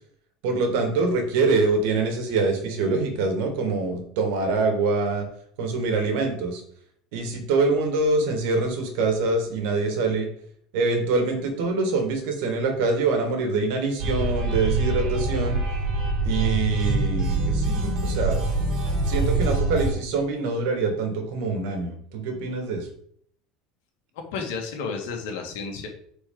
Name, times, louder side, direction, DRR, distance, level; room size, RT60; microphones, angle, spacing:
voice 1, 0.4-5.3 5.6-6.6 7.1-10.3 10.7-15.6 16.2-18.5 19.1-22.9, right 3 dB, 65° right, 4 dB, 1.8 m, -25 dB
sound 1, 14.0-19.9, right 2 dB, 45° right, 1.8 m, -24 dB
voice 2, 24.1-25.9, left 5 dB, 80° left, 2 dB, 1.9 m, -32 dB
8.6 x 4.3 x 3.8 m, 0.63 s
cardioid pair, 180°, 0 cm